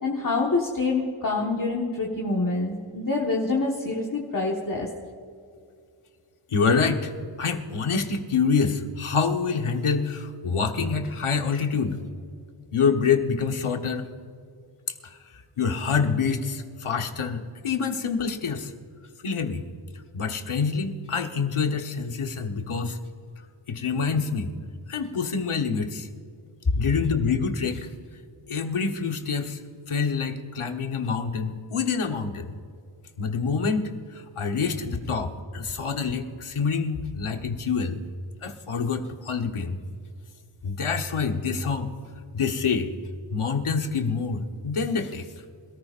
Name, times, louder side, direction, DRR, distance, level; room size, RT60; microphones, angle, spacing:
voice 1, 0.0-4.9, left 3 dB, 40° left, -2 dB, 1.6 m, -26 dB
voice 2, 6.5-7.1 7.4-12.0 12.7-14.1 15.6-18.7 19.2-19.6 20.1-23.0 23.7-24.5 24.9-26.1 26.7-27.9 28.5-29.6 29.9-32.5 33.2-38.0 38.4-39.8 40.6-41.9 42.3-42.9 43.3-45.3, left 5 dB, 75° left, 5 dB, 1.4 m, -26 dB
27.0 x 14.0 x 2.6 m, 2.3 s
wide cardioid pair, 75°, 50 cm